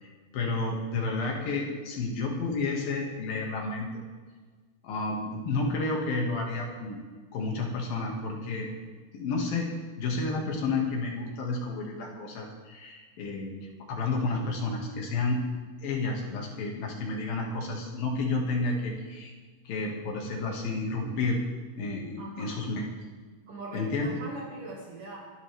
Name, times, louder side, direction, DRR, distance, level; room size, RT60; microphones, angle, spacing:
voice 1, 0.0-3.9 4.8-7.0 7.3-8.7 9.1-9.7 10.0-13.6 13.9-15.4 15.8-19.3 19.7-21.4 21.8-22.9 23.7-24.2, left 3 dB, 65° left, 0 dB, 3.7 m, -31 dB
voice 2, 22.2-22.6 23.5-25.3, right 2 dB, 60° right, -3 dB, 3.3 m, -41 dB
24.0 x 11.5 x 3.5 m, 1.5 s
omnidirectional pair, 4.6 m